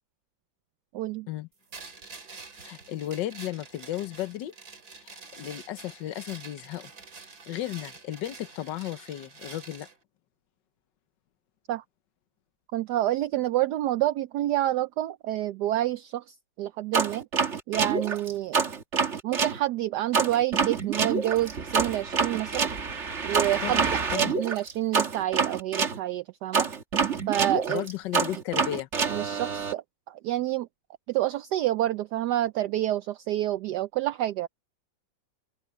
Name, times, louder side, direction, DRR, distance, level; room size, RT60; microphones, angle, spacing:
voice 1, 0.9-1.3 11.7-11.8 12.7-17.3 17.7-18.6 19.2-22.7 23.2-26.7 27.3-27.8 29.1-30.7 31.1-34.5, right 14 dB, 70° right, 1.1 m, -28 dB
sound 1, 1.7-10.0, right 4 dB, 55° right, 2.9 m, -47 dB
voice 2, 2.6-4.5 5.0-6.9 7.5-9.9 23.6-24.3 27.7-28.9, left 13 dB, 75° left, 1.5 m, -34 dB
sound 2, 16.9-19.6 20.1-26.0 26.5-29.7, right 5 dB, 40° right, 1.7 m, -27 dB
open air
omnidirectional pair, 2.0 m